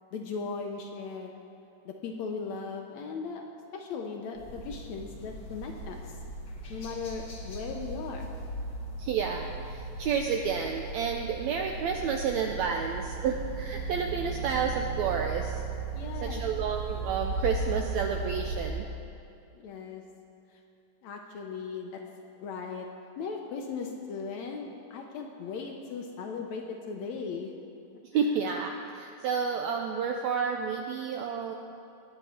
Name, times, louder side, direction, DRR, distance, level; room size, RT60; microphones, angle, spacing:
voice 1, 0.1-1.3 1.9-3.4 3.7-6.2 6.7-8.3 15.9-16.4 19.6-20.0 21.0-22.0 22.4-22.9 23.2-27.5, left 5 dB, 70° left, 2 dB, 1.8 m, -37 dB
sound 1, 4.4-18.7, right 3 dB, 45° left, 1.7 m, -36 dB
voice 2, 9.0-15.6 16.2-18.9 28.1-31.5, right 6 dB, 80° right, 3 dB, 1.6 m, -30 dB
20.0 x 8.1 x 4.3 m, 2.7 s
omnidirectional pair, 3.8 m